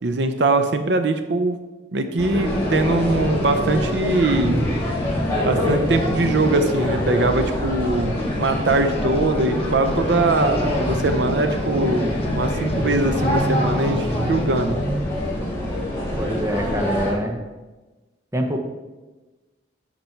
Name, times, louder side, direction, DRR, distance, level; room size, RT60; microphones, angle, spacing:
voice 1, 0.0-1.6 1.9-4.7 5.5-14.8, right 2 dB, 70° right, 8 dB, 0.6 m, -22 dB
sound 1, 2.2-17.1, left 1 dB, 15° left, 1.8 m, -25 dB
sound 2, 2.4-14.8, left 1 dB, 30° left, 0.6 m, -33 dB
voice 2, 16.2-17.4 18.3-18.6, equal, 15° right, 3 dB, 0.7 m, -25 dB
11.0 x 4.2 x 4.5 m, 1.2 s
head